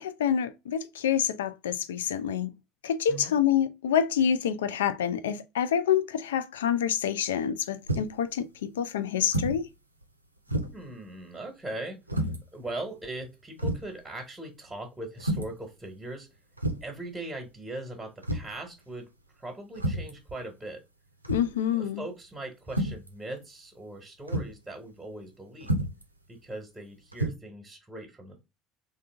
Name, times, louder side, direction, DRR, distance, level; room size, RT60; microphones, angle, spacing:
voice 1, 0.0-2.5 2.8-9.7 21.3-22.0, left 9 dB, 70° left, 0.4 m, -27 dB
sound 1, 7.9-8.2 9.3-9.6 10.0-10.1 10.5-10.9 12.1-12.4 13.1-13.2 13.6-13.9 15.2-15.6 16.6-17.0 18.2-18.6 19.7-20.2 21.2-21.6 22.7-23.1 24.3-24.6 25.6-26.0 27.1-27.3, right 1 dB, 90° right, 0.5 m, -30 dB
voice 2, 10.5-16.3 16.8-19.1 19.3-20.8 21.8-25.7 26.3-28.4, right 1 dB, 10° right, 1.2 m, -40 dB
3.6 x 2.7 x 3.4 m
figure-of-eight pair, 60°, 0 cm